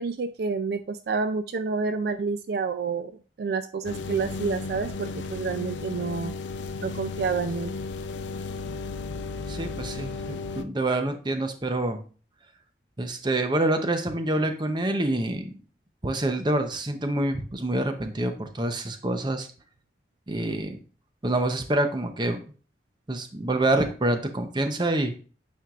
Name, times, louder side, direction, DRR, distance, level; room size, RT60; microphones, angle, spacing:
voice 1, 0.0-3.1 3.4-6.3 6.8-7.7, right 4 dB, 60° right, 10 dB, 0.3 m, -29 dB
sound 1, 3.8-10.6, left 4 dB, 85° left, 0.5 m, -34 dB
voice 2, 9.5-12.0 13.0-15.5 16.0-19.5 20.3-20.8 21.2-22.4 23.1-25.2, right 1 dB, 25° right, 7 dB, 0.7 m, -26 dB
9.1 x 4.4 x 2.4 m, 0.38 s
head